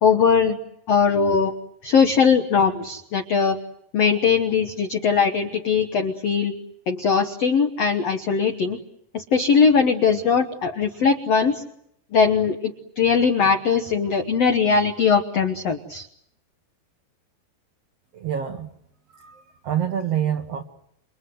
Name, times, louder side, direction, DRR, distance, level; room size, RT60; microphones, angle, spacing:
voice 1, 0.0-0.6 0.9-1.5 1.8-3.6 3.9-6.5 6.9-8.8 9.1-11.6 12.1-16.1, left 5 dB, 80° left, 6 dB, 1.4 m, -20 dB
voice 2, 18.1-18.7 19.1-20.6, right 9 dB, 75° right, 5 dB, 1.4 m, -27 dB
29.0 x 25.5 x 7.9 m, 0.77 s
omnidirectional pair, 4.7 m